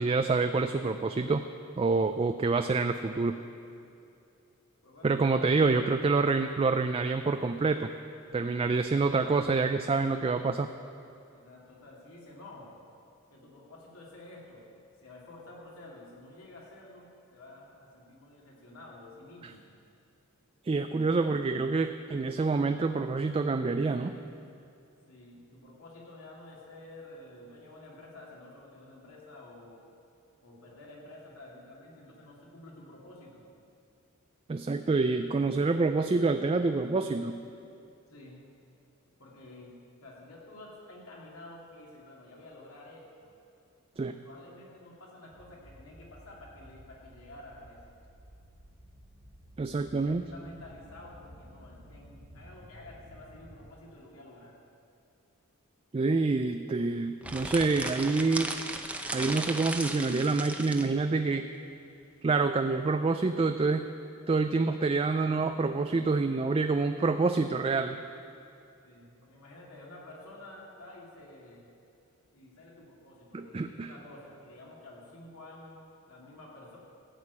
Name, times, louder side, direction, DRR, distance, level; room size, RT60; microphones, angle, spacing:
voice 1, 0.0-1.4 1.8-3.4 5.0-7.9 8.3-10.7 20.6-24.2 34.5-37.4 44.0-44.2 49.6-50.3 55.9-58.5 59.1-61.5 62.2-63.9 64.3-68.0 73.3-73.9, right 3 dB, 25° right, 7 dB, 0.3 m, -27 dB
voice 2, 4.8-5.3 11.3-12.7 13.3-14.6 15.0-19.6 25.1-29.8 30.4-33.5 38.1-38.4 39.2-39.7 40.0-43.3 43.9-47.9 49.8-54.5 68.8-71.7 72.3-76.8, left 2 dB, 75° left, -4 dB, 3.0 m, -50 dB
sound 1, 45.3-53.7, equal, 75° right, 2.1 m, -54 dB
sound 2, 57.2-60.9, right 2 dB, 5° right, 0.7 m, -36 dB
15.0 x 6.5 x 8.5 m, 2.6 s
head